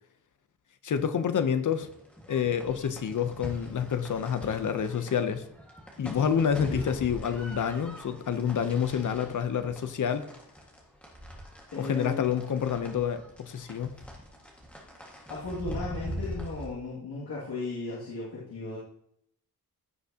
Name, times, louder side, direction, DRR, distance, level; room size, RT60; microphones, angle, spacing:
voice 1, 0.8-1.9 2.3-5.4 6.0-10.3 11.8-14.0, left 7 dB, 55° left, 10 dB, 0.8 m, -28 dB
sound 1, 1.8-16.7, equal, 5° left, 1.8 m, -43 dB
voice 2, 6.7-7.2 11.7-12.4 15.3-18.8, left 3 dB, 85° left, -7 dB, 2.4 m, -36 dB
15.5 x 6.0 x 2.9 m, 0.71 s
wide cardioid pair, 170°, 37 cm